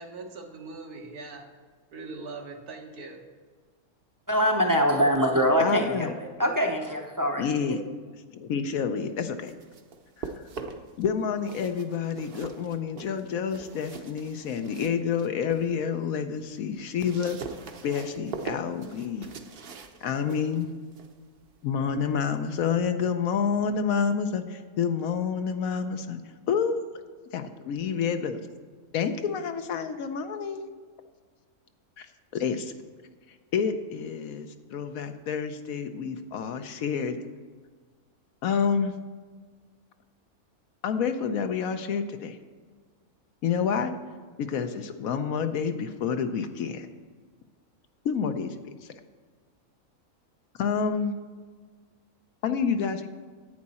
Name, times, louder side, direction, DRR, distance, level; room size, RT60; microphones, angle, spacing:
voice 1, 0.0-1.5 1.9-3.2, right 3 dB, 90° right, 2 dB, 1.8 m, -41 dB
voice 2, 4.3-7.4, equal, 20° right, 2 dB, 0.5 m, -24 dB
voice 3, 5.6-6.1 7.4-7.8 8.3-9.5 10.2-10.3 11.0-17.4 17.8-19.3 20.0-20.7 21.6-26.2 26.5-26.7 27.3-28.4 28.9-30.7 32.0-32.1 32.3-32.7 33.5-37.2 38.4-38.9 40.8-42.4 43.4-43.9 44.4-46.9 48.0-48.5 50.6-51.1 52.4-53.1, left 6 dB, 75° left, 8 dB, 1.1 m, -28 dB
sound 1, 9.2-11.0 11.4-15.7 16.1-22.7, right 4 dB, 50° right, 0.8 m, -43 dB
11.0 x 8.6 x 4.2 m, 1.5 s
omnidirectional pair, 1.6 m